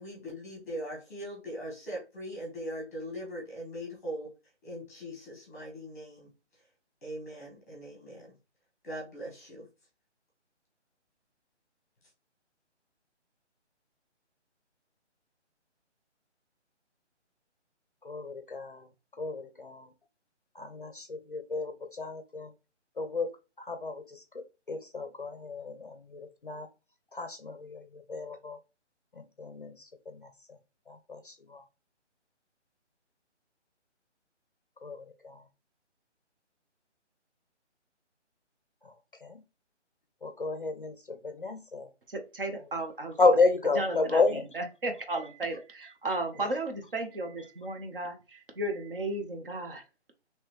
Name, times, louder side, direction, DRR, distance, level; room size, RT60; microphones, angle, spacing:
voice 1, 0.0-4.3 4.6-6.3 7.0-8.3 8.8-9.7, equal, 15° left, 1.0 m, -40 dB
voice 2, 18.0-18.9 19.2-19.9 20.5-22.5 23.0-23.3 23.6-26.7 27.1-28.6 29.1-30.3 30.9-31.6 34.8-35.4 38.8-38.9 39.2-39.4 40.2-41.9 43.2-44.5, left 3 dB, 45° left, 0.5 m, -31 dB
voice 3, 42.1-43.2 43.7-49.8, right 2 dB, 50° right, 0.8 m, -34 dB
3.7 x 3.0 x 2.9 m
hypercardioid pair, 170°, 36 cm